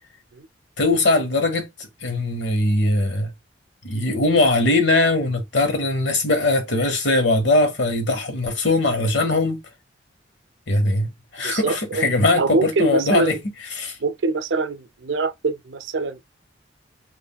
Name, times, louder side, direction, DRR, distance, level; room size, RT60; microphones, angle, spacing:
voice 1, 0.8-1.7 2.0-3.3 3.8-9.6 10.7-11.1 11.3-13.4 13.8-14.0, left 2 dB, 75° left, 1.2 m, -20 dB
voice 2, 11.4-12.0 12.3-13.4 14.0-16.2, right 3 dB, 85° right, 0.5 m, -24 dB
5.5 x 2.6 x 2.3 m
head